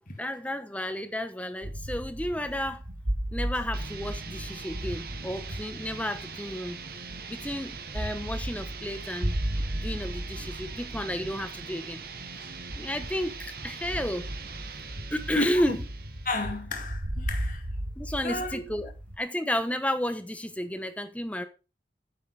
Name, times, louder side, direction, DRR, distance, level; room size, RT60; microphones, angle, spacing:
voice 1, 0.2-2.8 3.3-6.8 7.3-9.4 9.7-12.0 12.8-14.3 15.1-15.8 18.0-18.9 19.2-21.4, equal, 10° left, 1.0 m, -32 dB
sound 1, 1.6-19.2, right 1 dB, 90° right, 2.7 m, -36 dB
sound 2, 3.7-16.6, right 5 dB, 55° right, 1.5 m, -42 dB
voice 2, 15.4-15.8 16.3-17.6 18.2-18.6, left 2 dB, 50° left, 2.2 m, -32 dB
9.8 x 7.5 x 4.9 m
head